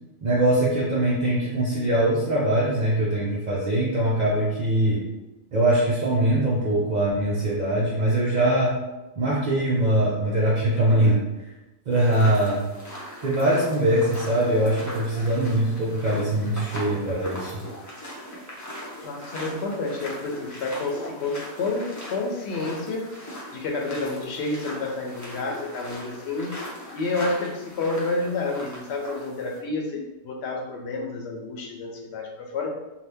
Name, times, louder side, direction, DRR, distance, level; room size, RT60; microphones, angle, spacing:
voice 1, 0.2-5.0 5.5-8.8 9.2-11.2 11.9-12.7 13.2-17.6, right 1 dB, 50° right, -6 dB, 0.6 m, -22 dB
sound 1, 11.9-29.6, equal, 20° left, 0.5 m, -39 dB
voice 2, 19.0-23.1 23.5-26.5 26.9-32.8, left 3 dB, 75° left, 1 dB, 0.9 m, -29 dB
2.7 x 2.2 x 3.4 m, 1.0 s
omnidirectional pair, 1.1 m